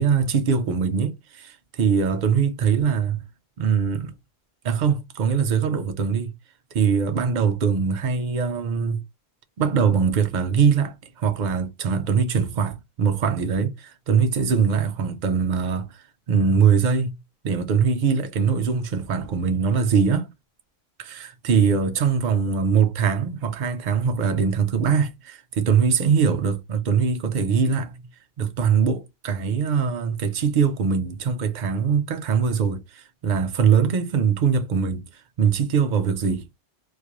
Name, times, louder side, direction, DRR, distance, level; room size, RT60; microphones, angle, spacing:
voice 1, 0.0-3.2 3.6-4.1 4.6-6.3 6.7-9.0 9.6-15.9 16.3-17.2 17.4-20.3 21.0-27.9 28.4-35.0 35.4-36.5, right 6 dB, 55° right, 0.6 m, -22 dB
2.4 x 2.2 x 2.9 m
omnidirectional pair, 1.1 m